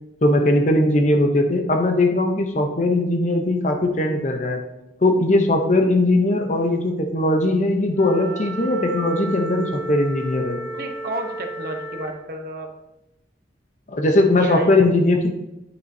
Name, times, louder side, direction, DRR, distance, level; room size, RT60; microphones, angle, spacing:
voice 1, 0.2-4.6 5.0-10.6 13.9-15.3, left 2 dB, 40° left, 4 dB, 0.7 m, -19 dB
Wind instrument woodwind instrument, 7.9-12.2, right 2 dB, 80° right, 0.8 m, -33 dB
voice 2, 10.7-12.7 14.4-14.7, right 2 dB, 50° right, 4 dB, 0.9 m, -31 dB
8.9 x 6.2 x 2.7 m, 0.92 s
head